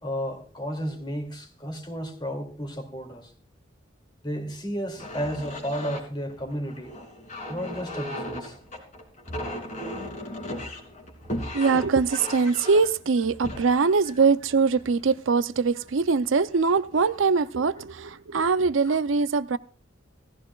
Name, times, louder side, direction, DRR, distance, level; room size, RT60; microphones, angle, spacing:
voice 1, 0.0-3.3 4.2-7.0 7.5-8.6 12.1-12.2 18.8-19.0, equal, 25° left, 2.6 m, -33 dB
sound 1, 4.9-15.2 15.9-16.1 16.5-17.0, left 1 dB, 40° left, 3.1 m, -37 dB
voice 2, 11.5-19.6, right 4 dB, 70° right, 0.6 m, -22 dB
17.5 x 15.0 x 2.4 m
head